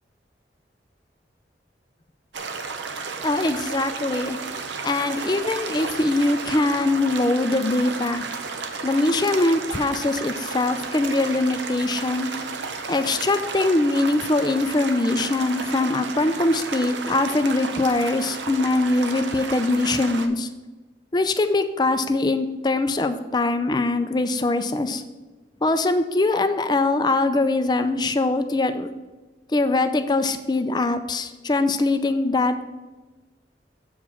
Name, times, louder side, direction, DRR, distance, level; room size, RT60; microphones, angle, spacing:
sound 1, 2.3-20.3, right 4 dB, 90° right, 0.7 m, -33 dB
voice 1, 3.2-4.4 4.8-8.2 8.8-12.3 12.9-20.5 21.1-25.0 25.6-28.9 29.5-32.7, left 2 dB, 25° left, 9 dB, 0.4 m, -22 dB
7.2 x 4.9 x 5.6 m, 1.2 s
head